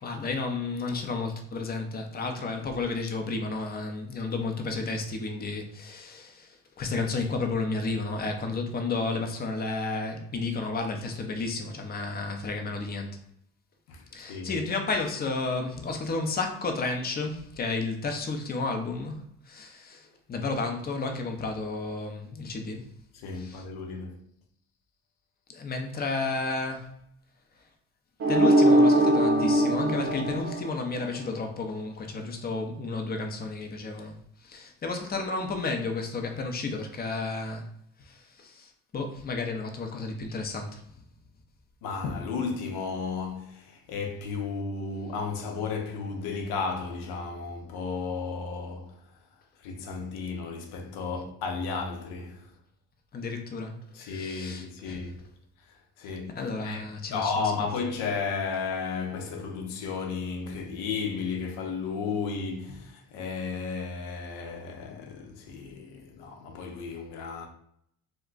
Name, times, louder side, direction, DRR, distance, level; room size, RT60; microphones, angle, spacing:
voice 1, 0.0-6.5 6.8-13.2 14.1-19.2 19.5-22.8 23.3-23.6 25.5-26.9 28.3-34.2 34.4-37.7 38.1-40.8 53.1-55.1 56.3-57.3, left 3 dB, 25° left, 0.5 m, -32 dB
voice 2, 23.2-24.2 41.8-48.9 49.6-52.4 53.9-55.2 56.0-67.5, left 5 dB, 70° left, 0.7 m, -33 dB
sound 1, 28.2-31.2, right 1 dB, 35° right, 0.7 m, -21 dB
2.3 x 2.2 x 3.8 m
supercardioid pair, 75°, 39 cm